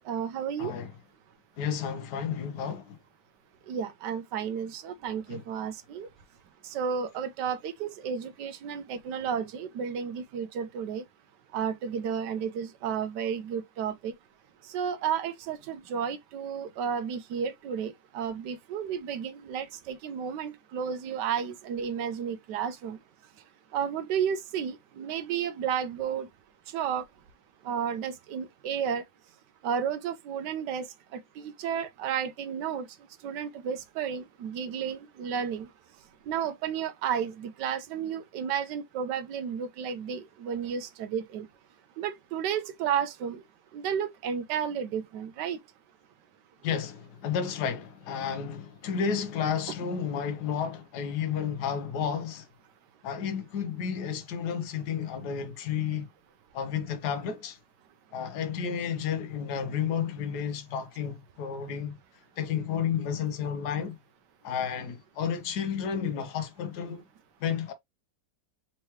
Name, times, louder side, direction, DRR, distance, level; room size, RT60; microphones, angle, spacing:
voice 1, 0.1-0.7 3.7-6.1 6.7-11.0 11.5-14.1 14.7-23.0 23.7-26.3 26.7-27.0 27.7-29.0 29.6-30.9 31.1-32.9 33.2-35.7 36.3-41.5 42.0-43.4 43.7-45.6, right 7 dB, 75° right, 1.2 m, -32 dB
voice 2, 0.6-0.9 1.6-3.0 5.3-5.4 46.6-52.5 53.0-56.1 56.5-57.6 58.1-62.0 62.4-64.0 64.4-67.0 67.4-67.7, left 7 dB, 70° left, 1.4 m, -31 dB
4.5 x 3.0 x 3.0 m
omnidirectional pair, 1.9 m